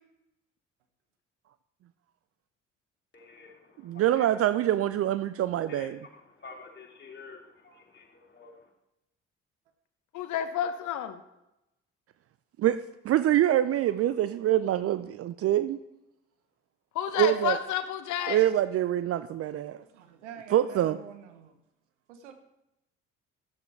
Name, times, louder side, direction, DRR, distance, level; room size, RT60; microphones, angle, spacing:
voice 1, 3.1-3.6 3.9-4.3 5.7-5.9 6.4-8.5, left 4 dB, 30° left, 0 dB, 2.9 m, -48 dB
voice 2, 3.8-6.0 12.6-15.8 17.2-17.6 18.3-19.8 20.5-21.0, right 12 dB, 40° right, 14 dB, 0.5 m, -25 dB
voice 3, 10.1-11.2 16.9-18.4, left 10 dB, 55° left, 10 dB, 0.9 m, -30 dB
voice 4, 19.8-21.6 22.1-22.3, right 8 dB, 75° right, 8 dB, 1.1 m, -47 dB
14.0 x 9.9 x 3.3 m, 0.89 s
figure-of-eight pair, 50°, 36 cm